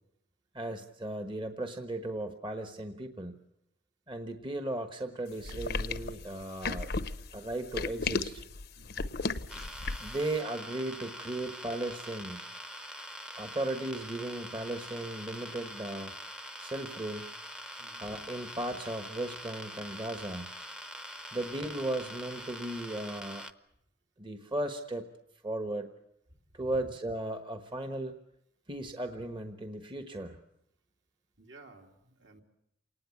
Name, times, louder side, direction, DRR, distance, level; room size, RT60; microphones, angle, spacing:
voice 1, 0.5-3.4 4.1-6.9 7.3-8.4 10.0-12.4 13.4-16.1 16.6-17.3 18.0-20.5 21.3-23.5 24.2-25.1 25.4-25.9 26.5-28.2 28.7-30.4, right 1 dB, 25° right, 7 dB, 1.2 m, -36 dB
sound 1, 5.4-10.2, left 3 dB, 55° left, 0.9 m, -34 dB
voice 2, 8.8-9.5 17.8-18.3 21.3-21.4 26.3-26.8 31.4-32.4, right 2 dB, 65° right, 1 dB, 3.2 m, -56 dB
sound 2, 9.5-23.5, equal, 5° right, 0.9 m, -44 dB
28.0 x 19.0 x 8.5 m, 0.78 s
head